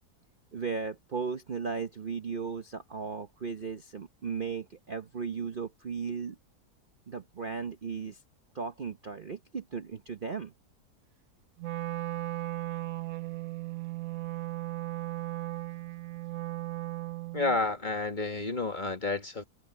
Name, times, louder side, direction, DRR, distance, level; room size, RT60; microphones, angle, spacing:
voice 1, 0.5-6.4 7.1-8.2 8.5-10.5, right 5 dB, 40° right, 0.9 m, -36 dB
Wind instrument woodwind instrument, 11.6-17.6, right 17 dB, 65° right, 1.0 m, -36 dB
voice 2, 17.3-19.4, left 3 dB, 30° left, 1.8 m, -30 dB
omnidirectional pair, 1.8 m